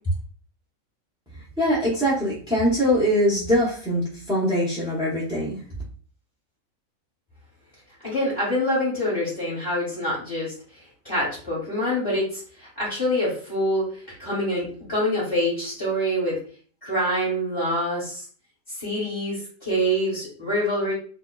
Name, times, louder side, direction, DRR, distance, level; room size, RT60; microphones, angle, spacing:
voice 1, 1.6-5.6, equal, 5° right, -9 dB, 0.5 m, -22 dB
voice 2, 8.0-16.4 16.8-18.2 18.7-20.9, equal, 20° left, -9 dB, 1.1 m, -26 dB
2.7 x 2.2 x 2.3 m, 0.43 s
omnidirectional pair, 1.5 m